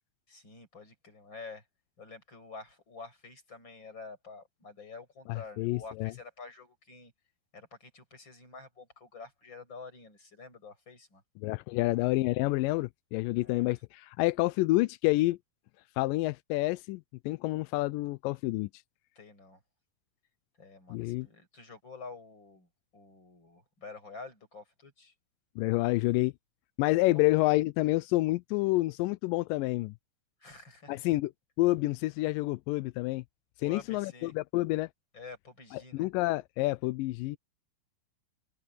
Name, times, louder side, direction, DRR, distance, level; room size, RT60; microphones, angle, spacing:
voice 1, 0.3-1.6 2.0-7.1 7.5-11.2 13.4-13.8 19.2-19.6 20.6-25.1 30.4-31.0 33.6-34.3 35.1-36.1, left 4 dB, 30° left, 8.3 m, -48 dB
voice 2, 5.3-6.1 11.4-15.4 16.0-18.7 20.9-21.3 25.6-26.3 26.8-29.9 30.9-31.3 31.6-33.2 33.6-34.9 35.7-37.4, left 20 dB, 85° left, 2.0 m, -28 dB
open air
omnidirectional pair, 4.4 m